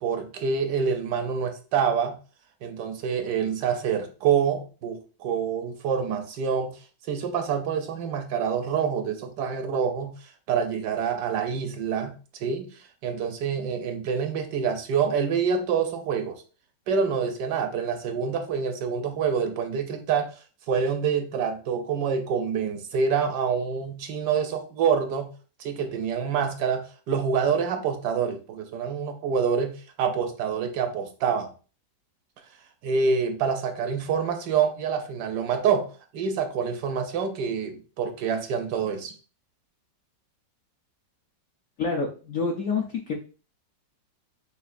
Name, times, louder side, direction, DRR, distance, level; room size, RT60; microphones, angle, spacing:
voice 1, 0.0-2.2 2.6-6.8 7.1-10.1 10.5-12.1 12.4-12.7 13.0-16.4 16.9-20.3 20.7-25.3 25.6-31.5 32.8-39.1, right 6 dB, 75° right, 7 dB, 1.1 m, -26 dB
voice 2, 41.8-43.1, left 4 dB, 70° left, 1 dB, 0.7 m, -27 dB
6.8 x 2.4 x 2.5 m, 0.36 s
omnidirectional pair, 2.0 m